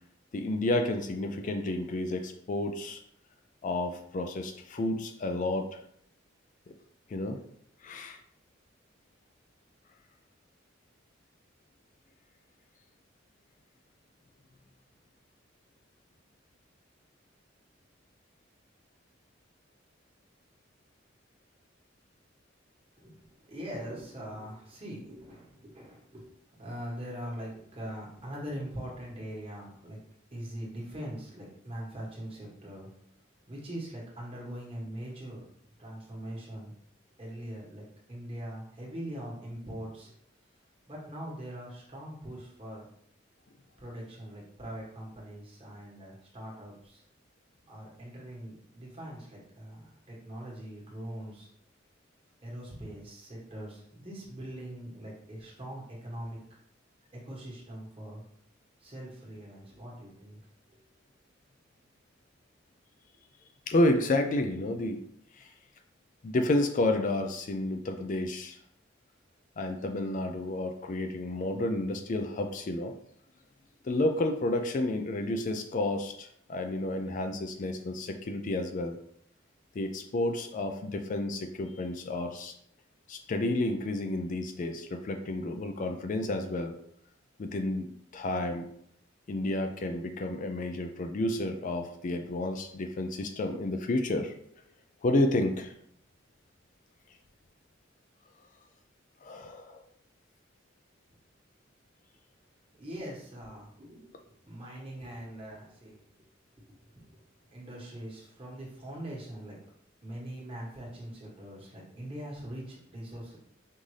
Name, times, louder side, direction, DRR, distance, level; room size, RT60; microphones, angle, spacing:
voice 1, 0.3-3.0 3.6-5.8 7.1-7.4 7.8-8.2 63.7-65.0 65.3-65.5 66.2-68.6 69.6-72.9 73.8-79.0 79.8-82.5 83.1-86.8 87.4-88.7 89.3-94.3 95.0-95.7 99.2-99.8, left 1 dB, 40° left, 5 dB, 0.4 m, -30 dB
voice 2, 23.0-26.3 26.6-30.0 30.3-32.9 33.5-35.5 35.8-36.7 37.2-40.1 40.9-42.9 43.8-47.0 47.7-51.5 52.4-56.4 57.1-58.2 58.8-60.4 60.7-60.8 102.7-106.3 106.7-107.2 107.5-109.6 110.0-113.4, right 1 dB, 30° right, -4 dB, 1.4 m, -42 dB
5.4 x 2.6 x 3.2 m, 0.67 s
head